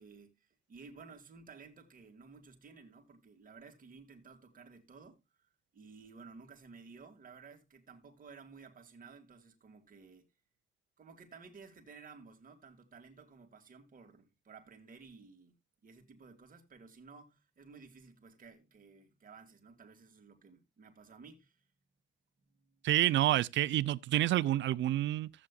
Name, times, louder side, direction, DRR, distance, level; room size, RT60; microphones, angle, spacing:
voice 1, 0.0-5.2 5.7-10.3 11.0-15.6 15.8-21.6 22.5-22.9, right 4 dB, 45° right, 2.3 m, -55 dB
voice 2, 22.8-25.3, right 14 dB, 70° right, 0.5 m, -28 dB
14.5 x 8.3 x 2.4 m
cardioid pair, 90°, 20 cm